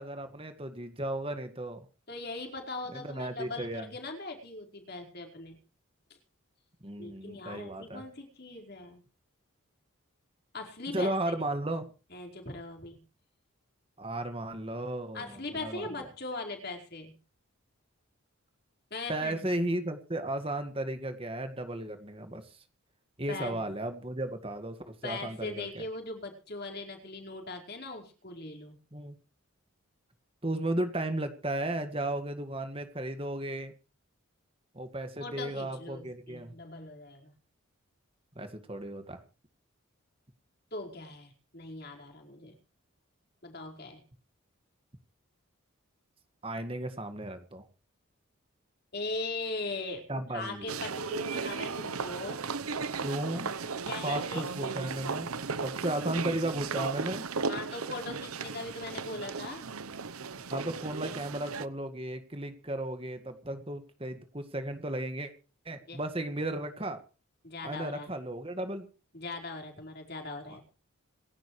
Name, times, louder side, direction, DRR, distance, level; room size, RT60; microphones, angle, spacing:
voice 1, 0.0-1.8 2.9-3.9 6.8-8.0 10.9-11.9 14.0-15.9 19.1-22.6 23.2-25.8 28.9-29.2 30.4-33.7 34.7-36.5 38.4-39.2 46.4-47.7 50.1-50.7 53.0-53.6 54.0-55.3 55.6-57.2 60.5-65.3 65.7-67.0 67.6-68.9, right 1 dB, 25° right, 8 dB, 1.9 m, -35 dB
voice 2, 2.1-5.6 7.0-9.0 10.5-11.1 12.1-13.0 15.1-17.2 18.9-19.6 23.3-23.6 25.0-28.8 35.2-37.3 40.7-42.6 43.4-44.0 48.9-52.8 53.9-54.5 57.5-59.7 65.9-66.0 67.4-68.1 69.1-70.6, left 2 dB, 45° left, 2 dB, 4.8 m, -40 dB
sound 1, 50.7-61.7, right 5 dB, 85° right, 0.9 m, -36 dB
27.0 x 12.0 x 3.2 m, 0.35 s
head